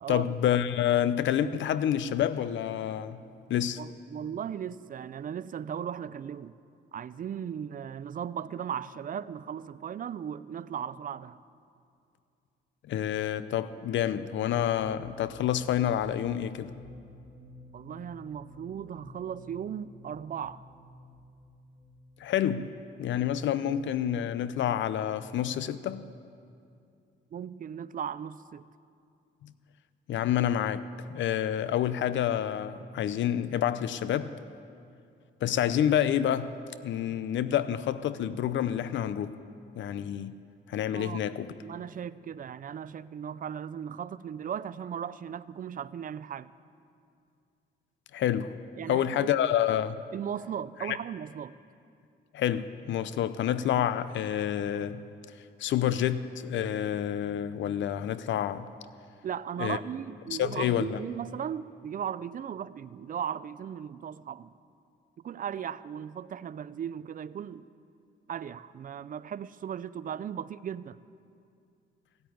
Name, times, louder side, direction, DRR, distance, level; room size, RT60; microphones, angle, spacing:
voice 1, 0.1-3.2 3.5-3.8 12.9-16.8 22.2-22.7 23.0-26.1 29.4-29.5 30.1-30.8 31.1-34.3 35.4-36.5 36.8-39.4 39.8-40.4 40.7-41.5 48.1-48.5 48.9-50.0 50.8-51.0 52.3-55.0 55.6-58.7 59.6-59.8 60.3-61.0, left 10 dB, 70° left, 14 dB, 0.6 m, -28 dB
voice 2, 3.8-6.6 6.9-11.4 17.7-20.6 27.3-28.6 40.9-41.2 41.6-46.5 48.8-49.3 50.1-51.5 59.2-64.5 65.2-67.7 68.3-71.0, right 8 dB, 45° right, 17 dB, 0.4 m, -37 dB
sound 1, 14.5-24.1, equal, 25° right, 1.6 m, -52 dB
16.0 x 8.8 x 9.4 m, 2.5 s
cardioid pair, 90°, 20 cm